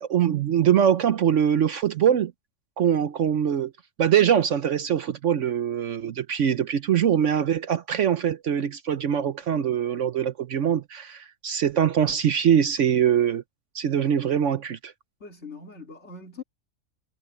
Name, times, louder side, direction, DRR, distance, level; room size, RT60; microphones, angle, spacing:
voice 1, 0.0-2.3 2.8-3.7 4.0-13.4 13.7-14.9, right 9 dB, 60° right, 1.0 m, -23 dB
voice 2, 15.2-16.4, left 4 dB, 50° left, 3.4 m, -41 dB
omnidirectional pair, 1.5 m